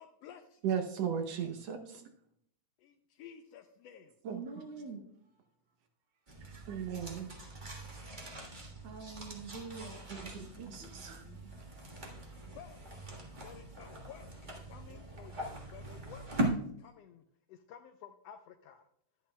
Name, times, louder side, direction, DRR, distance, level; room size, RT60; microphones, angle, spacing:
voice 1, 0.0-0.6 2.8-4.1 12.5-12.9 13.4-18.9, left 8 dB, 80° left, 7 dB, 1.5 m, -53 dB
voice 2, 0.6-2.0 4.2-4.4 6.4-7.3 10.1-11.2, right 8 dB, 70° right, 6 dB, 1.8 m, -37 dB
voice 3, 1.4-1.9 4.3-5.0 7.4-7.7 8.8-11.4 13.2-13.3, right 4 dB, 55° right, -1 dB, 1.9 m, -47 dB
sound 1, 6.3-16.5, right 1 dB, 30° right, 0.8 m, -41 dB
11.0 x 10.5 x 2.2 m, 0.67 s
omnidirectional pair, 3.3 m